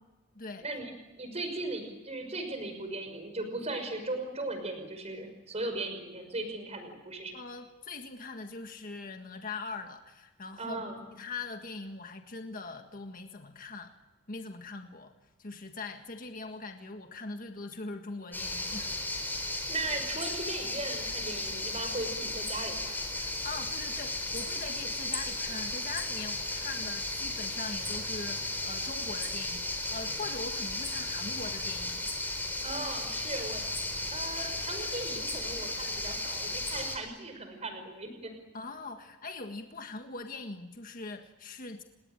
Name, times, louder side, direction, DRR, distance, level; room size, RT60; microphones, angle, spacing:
voice 1, 0.3-0.7 7.3-10.8 11.1-13.9 14.3-15.1 15.4-18.9 23.2-32.1 38.5-41.8, left 3 dB, 45° left, 5 dB, 1.7 m, -42 dB
voice 2, 1.2-7.4 10.6-10.9 19.4-22.9 32.6-38.3, right 2 dB, 35° right, 7 dB, 5.7 m, -38 dB
sound 1, 18.3-37.0, left 2 dB, 10° left, 4.2 m, -35 dB
30.0 x 18.5 x 9.2 m, 1.1 s
head